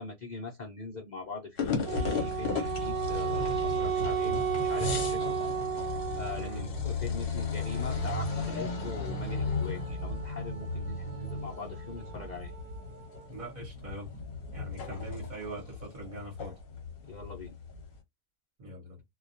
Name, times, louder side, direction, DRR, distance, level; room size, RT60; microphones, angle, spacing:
voice 1, 0.0-5.3 6.1-12.5 14.9-15.0 17.0-17.5, left 4 dB, 85° left, 0.4 m, -42 dB
sound 1, 1.6-18.0, left 3 dB, 50° left, 0.7 m, -35 dB
Wind instrument woodwind instrument, 1.8-6.7, right 6 dB, 70° right, 0.9 m, -32 dB
Wind instrument woodwind instrument 2, 7.6-13.5, right 7 dB, 10° right, 1.0 m, -50 dB
voice 2, 13.3-14.1 14.5-16.6 18.6-19.0, right 1 dB, 40° right, 0.9 m, -42 dB
2.2 x 2.2 x 2.6 m
omnidirectional pair, 1.5 m